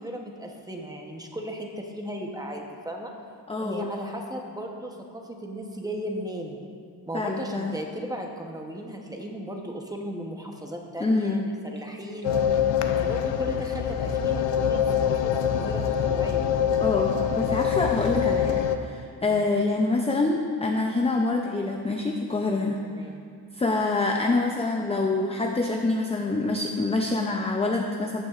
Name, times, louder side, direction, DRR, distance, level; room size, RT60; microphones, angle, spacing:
voice 1, 0.0-3.1 3.6-6.6 7.1-12.3 12.8-16.5 19.2-19.5 22.9-23.3, equal, 10° right, 1 dB, 0.8 m, -36 dB
voice 2, 3.5-3.8 7.1-7.7 11.0-11.4 16.8-22.8 23.6-28.2, left 3 dB, 15° left, 1 dB, 0.4 m, -26 dB
sound 1, 12.2-18.8, left 8 dB, 75° left, 0.6 m, -24 dB
13.5 x 9.4 x 2.4 m, 2.2 s
wide cardioid pair, 155°, 43 cm